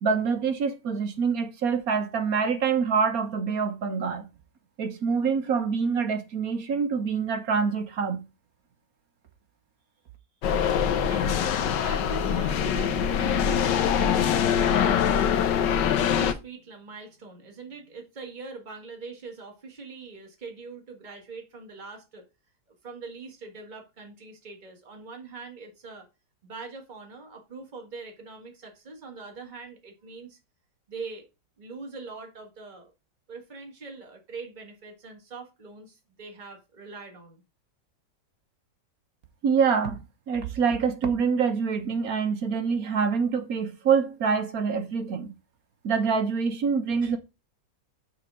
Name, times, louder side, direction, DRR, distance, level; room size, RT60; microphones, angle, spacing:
voice 1, 0.0-4.3 4.8-8.2 39.4-40.0 40.3-45.3 45.8-47.2, right 6 dB, 60° right, 1.5 m, -25 dB
sound 1, 10.4-16.3, left 8 dB, 90° left, 1.5 m, -23 dB
voice 2, 11.0-11.4 11.8-15.7 15.9-22.2 22.8-26.1 26.4-30.4 30.9-31.2 31.6-32.9 33.3-37.4 47.0-47.1, right 4 dB, 25° right, 1.9 m, -43 dB
6.5 x 4.1 x 6.2 m
omnidirectional pair, 1.9 m